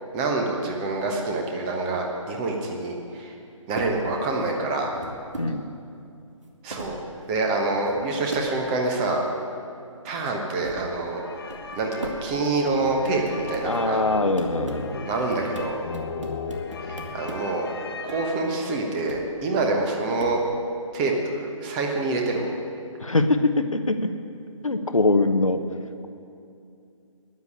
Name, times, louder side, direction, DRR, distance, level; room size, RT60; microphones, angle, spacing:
voice 1, 0.1-3.3 3.7-4.9 6.6-7.0 7.3-9.2 10.0-11.2 11.8-14.0 15.0-15.8 16.8-17.7 18.0-20.4 20.9-22.5, right 3 dB, 15° right, 1 dB, 1.1 m, -26 dB
sound 1, 3.7-3.9 4.8-5.5 6.0-6.1 6.4-7.0 7.5-8.0 8.3-8.5 8.8-9.0 10.3-10.4 10.6-10.8 11.5-12.2 12.4-13.8 14.4-14.9 15.3-17.4 18.1-18.2 19.1-19.2 20.2-20.3, right 1 dB, 65° right, 2.0 m, -37 dB
sound 2, 11.1-19.0, left 4 dB, 45° left, 1.2 m, -36 dB
voice 2, 13.6-15.1 23.0-24.1 24.6-25.6, left 2 dB, 75° left, 8 dB, 1.1 m, -23 dB
9.8 x 9.4 x 9.9 m, 2.5 s
figure-of-eight pair, 145°, 17 cm